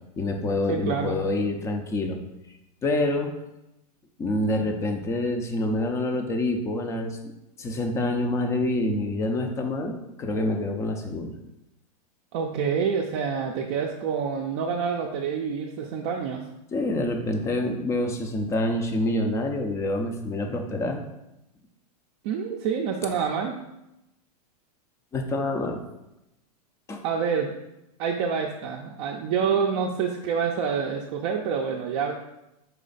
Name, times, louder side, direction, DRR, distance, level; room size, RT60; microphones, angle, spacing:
voice 1, 0.2-2.2 2.8-3.3 4.2-7.2 7.6-11.3 16.7-21.0 25.1-25.8 26.9-27.0, left 1 dB, 15° left, 4 dB, 0.4 m, -27 dB
voice 2, 0.7-1.2 12.3-16.4 22.2-23.6 27.0-27.5 28.0-32.1, right 6 dB, 45° right, 0 dB, 0.4 m, -27 dB
4.3 x 3.1 x 3.9 m, 0.89 s
supercardioid pair, 140°, 20 cm